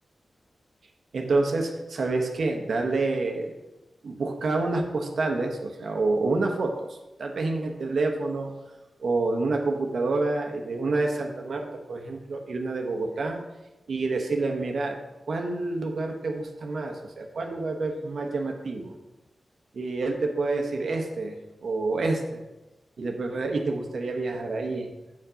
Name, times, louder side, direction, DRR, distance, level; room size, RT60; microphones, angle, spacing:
voice 1, 1.1-3.5 4.0-8.5 9.0-13.4 13.9-15.0 15.3-18.9 19.7-22.4 23.0-25.1, right 3 dB, 75° right, 3 dB, 1.0 m, -28 dB
8.2 x 4.7 x 5.1 m, 1.0 s
wide cardioid pair, 85°, 0 cm